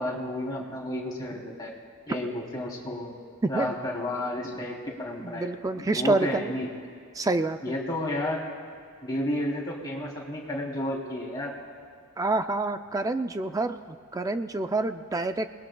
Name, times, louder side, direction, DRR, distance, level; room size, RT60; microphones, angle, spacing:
voice 1, 0.0-1.7 2.1-3.1 3.5-6.7 7.6-8.4 9.0-11.5, left 1 dB, 20° left, -4 dB, 3.0 m, -32 dB
voice 2, 5.2-6.5 7.2-7.7 12.2-13.8 14.1-15.5, right 2 dB, 15° right, 9 dB, 0.3 m, -27 dB
29.0 x 19.5 x 2.3 m, 2.2 s
head